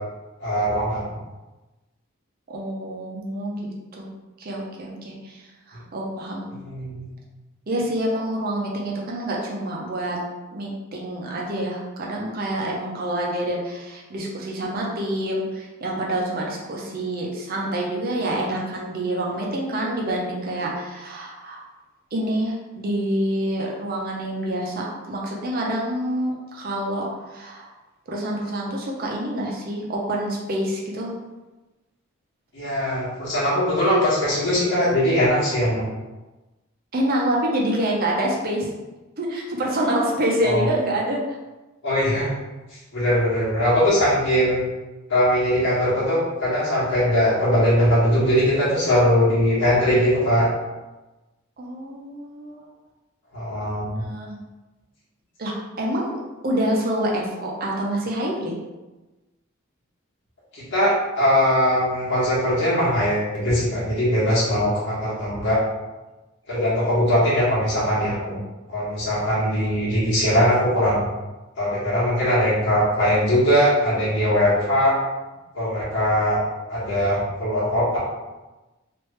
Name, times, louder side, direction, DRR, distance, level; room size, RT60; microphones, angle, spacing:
voice 1, 0.4-1.1 6.5-7.1 32.5-35.9 40.4-40.6 41.8-42.3 42.7-44.7 45.1-50.5 53.3-54.0 60.5-65.6 66.5-68.4 68.7-71.1 71.6-74.9 75.5-78.0, equal, 55° left, -8 dB, 1.3 m, -21 dB
voice 2, 2.5-4.1 4.4-5.4 5.7-6.5 7.7-10.2 10.5-21.6 22.1-27.7 28.1-31.1 36.9-38.7 39.2-41.4 49.6-49.7 51.6-52.7 53.8-54.3 55.4-56.2 56.4-58.5 68.3-68.4, right 1 dB, 45° right, -2 dB, 0.6 m, -27 dB
3.1 x 2.5 x 3.2 m, 1.1 s
head